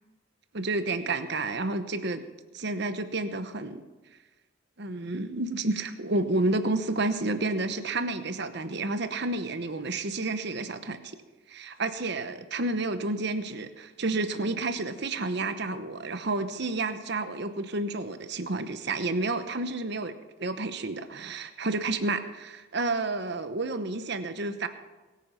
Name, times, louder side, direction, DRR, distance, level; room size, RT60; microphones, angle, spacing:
voice 1, 0.5-2.2 2.5-3.8 4.8-11.2 11.5-24.7, right 2 dB, 55° right, 10 dB, 1.0 m, -30 dB
22.0 x 9.3 x 5.7 m, 1.2 s
head